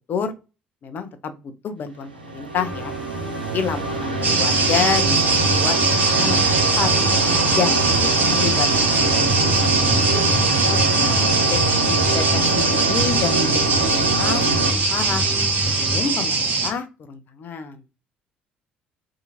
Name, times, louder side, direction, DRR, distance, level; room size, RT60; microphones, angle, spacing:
voice 1, 0.8-2.9 3.5-6.5 6.8-6.9 7.5-10.3 10.7-11.6 11.8-15.2 15.8-17.8, left 6 dB, 40° left, 9 dB, 0.6 m, -29 dB
sound 1, 2.1-14.7, right 3 dB, 85° right, 0.5 m, -25 dB
sound 2, 2.6-16.0, equal, ahead, 1.7 m, -31 dB
sound 3, 4.2-16.7, right 3 dB, 35° right, 1.0 m, -21 dB
2.8 x 2.3 x 2.8 m, 0.29 s
figure-of-eight pair, 50°, 5 cm